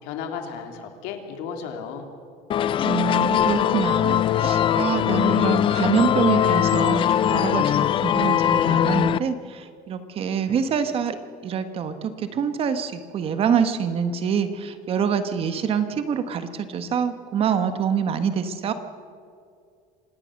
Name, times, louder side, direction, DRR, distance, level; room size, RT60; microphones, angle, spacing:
voice 1, 0.0-2.1, left 6 dB, 80° left, 4 dB, 3.2 m, -34 dB
sound 1, 2.5-9.2, left 10 dB, 30° left, 0.5 m, -21 dB
voice 2, 2.8-11.2 11.4-18.7, right 7 dB, 35° right, 10 dB, 1.3 m, -25 dB
26.5 x 18.5 x 6.5 m, 2.3 s
cardioid pair, 155°, 16 cm